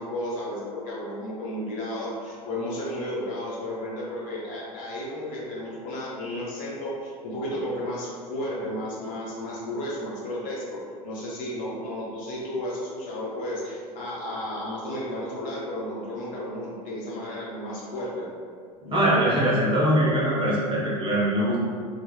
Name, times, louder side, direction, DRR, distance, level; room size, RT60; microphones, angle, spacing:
voice 1, 0.0-18.3, left 1 dB, 40° left, -6 dB, 1.0 m, -33 dB
voice 2, 18.8-21.6, equal, 25° right, -6 dB, 0.9 m, -22 dB
4.4 x 2.4 x 2.2 m, 2.1 s
figure-of-eight pair, 75°, 20 cm